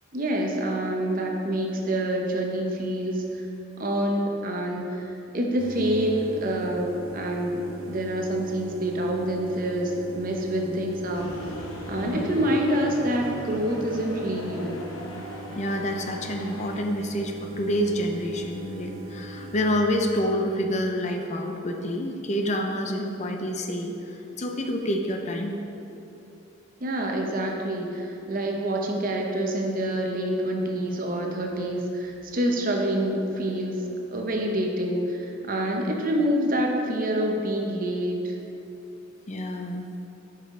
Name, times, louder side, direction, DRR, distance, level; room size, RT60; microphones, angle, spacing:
voice 1, 0.1-3.5 3.8-11.3 11.9-14.8 26.8-33.8 34.1-38.4, right 1 dB, 45° right, 1 dB, 0.8 m, -27 dB
sound 1, 5.6-19.7, right 2 dB, 85° right, 0.8 m, -41 dB
sound 2, 11.1-16.8, left 1 dB, 85° left, 0.9 m, -39 dB
voice 2, 15.5-25.6 35.8-35.9 39.3-39.9, equal, 35° left, 3 dB, 0.5 m, -28 dB
8.8 x 5.6 x 3.7 m, 2.9 s
head